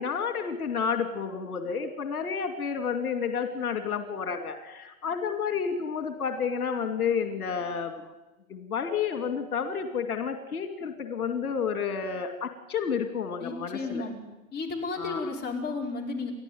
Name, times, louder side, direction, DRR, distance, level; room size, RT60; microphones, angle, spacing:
voice 1, 0.0-8.0 8.5-14.1 15.0-15.3, left 6 dB, 80° left, 7 dB, 2.7 m, -30 dB
voice 2, 13.4-14.2 14.5-16.3, left 3 dB, 20° left, 0 dB, 4.8 m, -33 dB
30.0 x 12.5 x 9.4 m, 1.0 s
hypercardioid pair, 130°, 44 cm